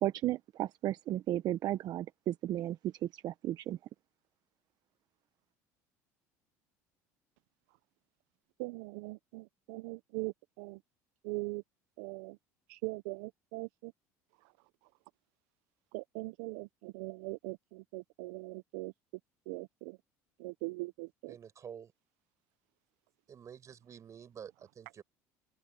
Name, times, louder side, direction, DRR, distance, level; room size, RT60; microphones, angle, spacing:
voice 1, 0.0-3.8, right 13 dB, 55° right, 1.1 m, -34 dB
voice 2, 8.6-10.8 11.2-11.6 12.0-12.4 12.7-13.9 15.9-18.9 19.5-20.0 20.4-21.3, right 25 dB, 75° right, 0.6 m, -41 dB
voice 3, 21.3-21.9 23.3-25.0, right 8 dB, 40° right, 6.9 m, -49 dB
supercardioid pair, 85°, 8 cm